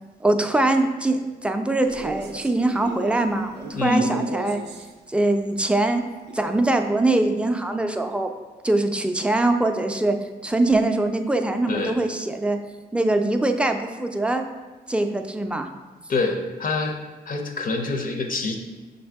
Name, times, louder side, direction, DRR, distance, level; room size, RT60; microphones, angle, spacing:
voice 1, 0.2-4.6 5.1-6.0 6.3-8.3 8.6-10.2 10.4-12.6 12.9-14.4 14.9-15.7, right 2 dB, 5° right, 6 dB, 0.3 m, -22 dB
Male speech man speaking, 1.8-4.9 6.3-6.9, right 4 dB, 90° right, 0.4 m, -37 dB
voice 2, 3.7-4.1 11.7-11.9 16.1-16.9 17.3-18.6, left 3 dB, 55° left, 3 dB, 0.6 m, -25 dB
5.8 x 2.6 x 3.4 m, 1.3 s
cardioid pair, 65°, 17 cm